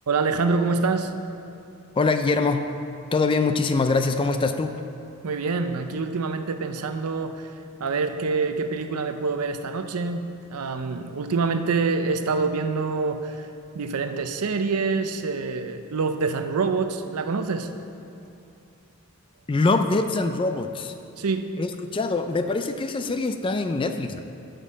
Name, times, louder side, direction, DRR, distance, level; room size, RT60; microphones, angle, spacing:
voice 1, 0.1-1.1 5.2-7.5 7.8-13.4 13.7-17.7 21.2-21.5, right 4 dB, 85° right, 8 dB, 0.6 m, -26 dB
voice 2, 2.0-2.6 3.1-4.7 19.5-20.9 21.6-24.2, left 3 dB, 25° left, 8 dB, 0.3 m, -23 dB
8.3 x 5.3 x 7.6 m, 2.6 s
head